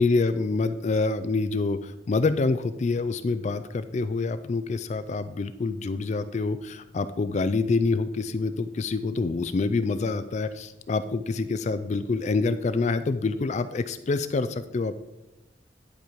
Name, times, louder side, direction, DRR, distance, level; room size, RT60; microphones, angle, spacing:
voice 1, 0.0-15.0, left 3 dB, 40° left, 12 dB, 0.3 m, -26 dB
10.5 x 5.1 x 4.6 m, 0.93 s
head